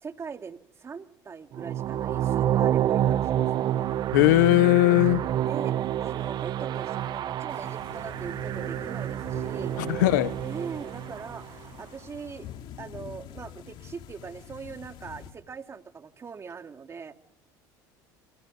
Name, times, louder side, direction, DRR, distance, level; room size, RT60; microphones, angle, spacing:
voice 1, 0.0-3.6 5.5-9.8 10.4-12.5 12.8-17.1, right 5 dB, 30° right, 2.4 m, -41 dB
sound 1, 1.5-11.7, right 11 dB, 50° right, 1.0 m, -28 dB
voice 2, 4.1-5.2 9.8-10.4, left 19 dB, 90° left, 0.9 m, -19 dB
sound 2, 7.5-15.3, left 10 dB, 60° left, 2.6 m, -46 dB
28.5 x 27.5 x 5.3 m
supercardioid pair, 100°, 9 cm